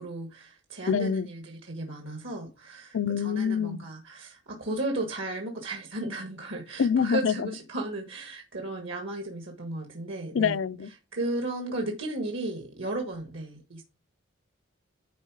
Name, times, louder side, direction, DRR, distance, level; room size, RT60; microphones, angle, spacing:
voice 1, 0.0-10.6 11.1-13.8, right 2 dB, 70° right, 1.5 m, -35 dB
voice 2, 0.9-1.3 2.9-3.8 6.8-7.5 10.3-10.9, left 6 dB, 75° left, 0.4 m, -26 dB
10.0 x 4.0 x 4.7 m
head